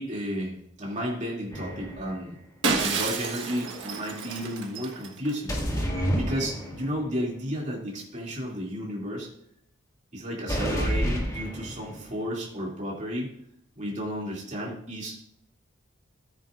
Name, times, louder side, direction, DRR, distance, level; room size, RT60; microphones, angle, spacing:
voice 1, 0.0-2.4 2.7-5.5 6.1-9.3 10.1-13.3 13.8-15.2, equal, 40° right, -3 dB, 2.7 m, -32 dB
sound 1, 1.5-2.2 5.5-7.0 10.5-12.1, equal, 15° left, 2.0 m, -29 dB
Shatter, 2.6-5.3, right 4 dB, 70° right, 1.5 m, -30 dB
13.5 x 9.1 x 2.5 m, 0.71 s
head